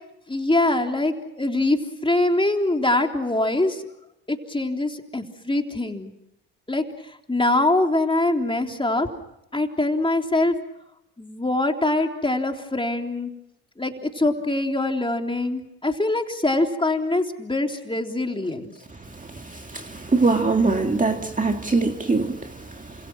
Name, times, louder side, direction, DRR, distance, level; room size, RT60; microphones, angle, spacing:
voice 1, 0.3-3.8 4.3-6.1 6.7-9.1 9.5-10.6 11.2-13.3 13.8-18.7, left 2 dB, 15° left, 3.5 m, -23 dB
voice 2, 19.3-22.9, right 3 dB, 20° right, 2.1 m, -23 dB
28.5 x 26.5 x 6.0 m
hypercardioid pair, 60°, 37 cm